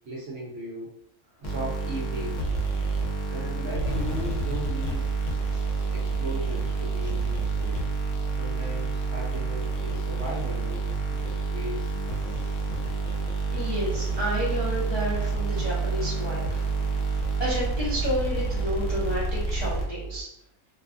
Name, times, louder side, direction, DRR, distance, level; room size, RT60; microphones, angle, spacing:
voice 1, 0.1-0.9 1.4-2.5 3.3-5.1 5.9-7.8 8.4-11.9, right 1 dB, 60° right, -4 dB, 0.7 m, -37 dB
sound 1, 1.4-20.2, right 4 dB, 65° left, 0.9 m, -28 dB
voice 2, 13.5-16.7 17.1-20.3, equal, 35° left, -9 dB, 0.4 m, -31 dB
2.6 x 2.3 x 2.4 m, 0.76 s
omnidirectional pair, 1.6 m